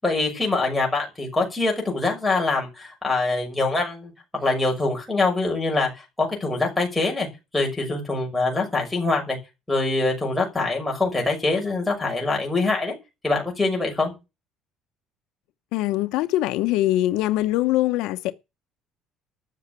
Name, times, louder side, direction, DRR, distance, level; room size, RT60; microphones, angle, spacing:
voice 1, 0.0-7.3 7.5-9.4 9.7-12.9 13.2-14.1, left 3 dB, 5° left, 6.1 m, -24 dB
voice 2, 15.7-18.3, left 15 dB, 75° left, 0.9 m, -22 dB
13.5 x 6.9 x 8.3 m
cardioid pair, 170°, 0 cm